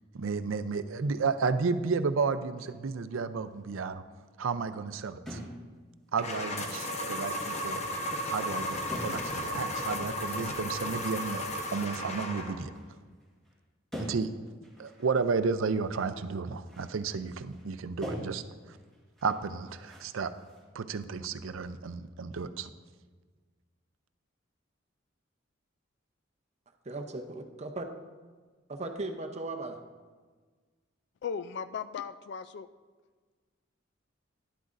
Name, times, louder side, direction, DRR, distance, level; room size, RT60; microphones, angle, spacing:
voice 1, 0.1-4.0 4.4-5.4 6.1-7.8 8.3-11.4 11.7-12.7 14.0-14.3 14.8-18.8 19.2-20.3 20.7-22.7, right 5 dB, 85° right, 11 dB, 0.5 m, -32 dB
sound 1, 2.6-2.9 5.3-5.7 6.0-6.2 7.0-7.1 7.7-8.0 8.9-9.4 9.7-9.9 10.4-13.6 13.9-16.2 16.4-17.2 17.5-17.7 18.0-20.6, equal, ahead, 1.7 m, -45 dB
sound 2, 6.2-12.7, left 1 dB, 35° left, 0.9 m, -34 dB
voice 2, 26.8-27.9 28.7-29.8, right 2 dB, 35° right, 5 dB, 0.6 m, -37 dB
voice 3, 31.2-32.7, left 7 dB, 55° left, 13 dB, 0.3 m, -37 dB
12.0 x 11.0 x 2.6 m, 1.4 s
head